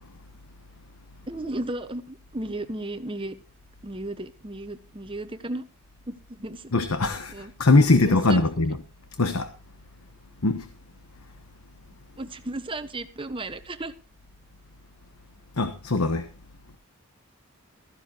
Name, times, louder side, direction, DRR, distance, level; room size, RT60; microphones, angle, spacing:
voice 1, 1.3-3.4 3.8-5.6 6.1-6.7 7.3-7.5 8.0-8.5 12.2-13.9, right 2 dB, 25° right, 1.0 m, -34 dB
voice 2, 6.7-8.8 9.2-9.5 10.4-10.7 15.6-16.3, left 2 dB, 80° left, 1.1 m, -21 dB
15.5 x 14.0 x 2.9 m
head